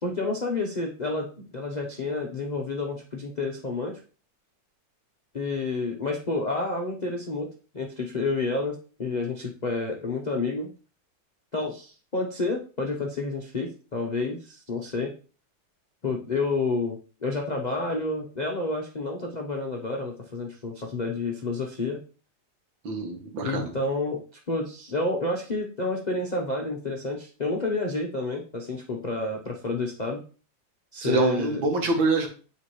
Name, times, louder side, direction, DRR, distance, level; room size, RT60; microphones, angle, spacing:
voice 1, 0.0-4.0 5.3-7.5 7.7-10.7 11.5-15.1 16.0-22.0 23.4-24.2 24.5-30.2 30.9-31.6, left 3 dB, 60° left, 1 dB, 0.4 m, -29 dB
voice 2, 22.8-23.7 31.0-32.3, right 3 dB, 85° right, 3 dB, 2.1 m, -25 dB
8.7 x 3.9 x 3.1 m, 0.38 s
omnidirectional pair, 2.1 m